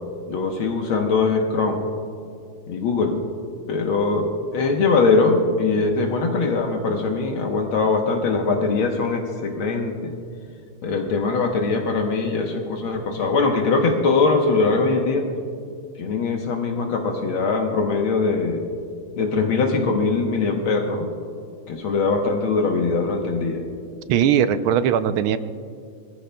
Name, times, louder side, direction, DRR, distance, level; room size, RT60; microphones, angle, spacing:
voice 1, 0.3-1.8 2.7-3.2 3.7-10.1 10.8-15.3 16.0-18.6 19.2-21.1 21.7-23.6, left 4 dB, 70° left, 2 dB, 1.8 m, -21 dB
voice 2, 24.1-25.4, right 9 dB, 80° right, 11 dB, 1.4 m, -19 dB
23.0 x 15.0 x 2.2 m, 2.3 s
omnidirectional pair, 2.4 m